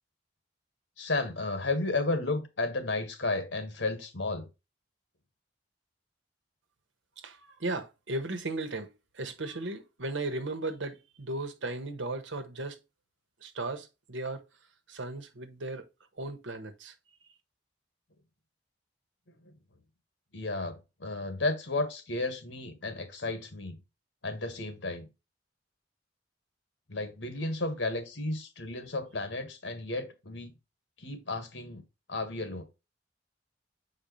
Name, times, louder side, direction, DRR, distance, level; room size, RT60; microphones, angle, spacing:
voice 1, 1.0-4.5 19.4-19.5 20.3-23.8 24.2-25.1 26.9-30.5 31.0-31.8 32.1-32.6, left 2 dB, 80° left, 1.6 m, -33 dB
voice 2, 7.2-12.8 13.4-14.4 14.9-15.8 16.1-16.9, right 2 dB, 85° right, 1.2 m, -36 dB
7.0 x 4.8 x 3.1 m
head